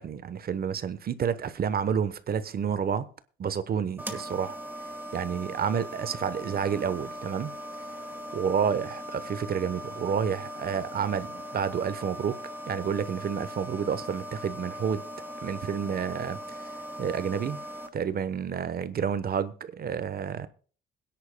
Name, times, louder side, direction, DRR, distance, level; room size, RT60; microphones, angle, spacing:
voice 1, 0.0-3.1 3.4-4.6 5.1-7.5 8.3-12.4 12.7-15.0 15.4-17.6 17.9-20.5, right 7 dB, 50° right, 1.0 m, -30 dB
sound 1, 4.0-17.9, equal, 10° right, 2.0 m, -40 dB
21.5 x 10.0 x 2.2 m
cardioid pair, 90°, 20 cm